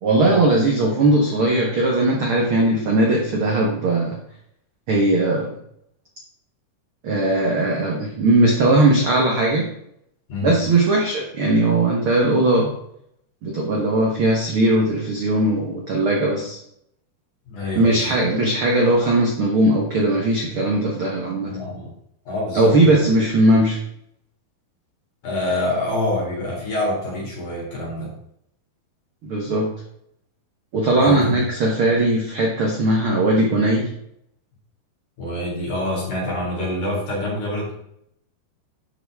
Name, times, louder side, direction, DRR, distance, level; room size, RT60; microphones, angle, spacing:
voice 1, 0.0-4.2 4.9-5.5 7.0-9.7 10.4-12.7 13.4-16.6 17.7-21.6 22.5-23.8 29.2-29.7 30.7-33.9, right 2 dB, 75° right, -1 dB, 1.2 m, -19 dB
voice 2, 17.5-18.2 21.4-21.9 22.2-23.0 25.2-28.1 31.0-31.4 35.2-37.7, left 1 dB, 50° left, -4 dB, 5.0 m, -26 dB
11.5 x 6.6 x 3.6 m, 0.74 s
omnidirectional pair, 4.7 m